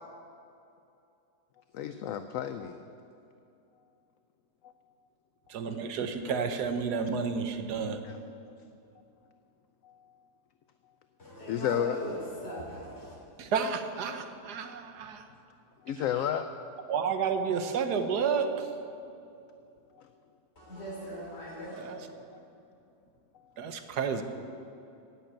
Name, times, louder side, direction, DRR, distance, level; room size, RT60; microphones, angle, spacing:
voice 1, 1.7-2.8 8.0-8.2 9.8-10.0 11.5-12.0 15.9-16.5 22.3-22.4, left 9 dB, 70° left, 9 dB, 0.9 m, -31 dB
voice 2, 5.5-8.0 13.4-15.2 16.0-16.1 16.9-18.7 21.8-22.1 23.6-24.2, right 6 dB, 80° right, 8 dB, 1.4 m, -31 dB
voice 3, 11.2-12.2 12.4-13.1 20.6-22.0, right 1 dB, 40° left, -4 dB, 3.7 m, -40 dB
10.5 x 9.1 x 8.8 m, 2.6 s
omnidirectional pair, 1.7 m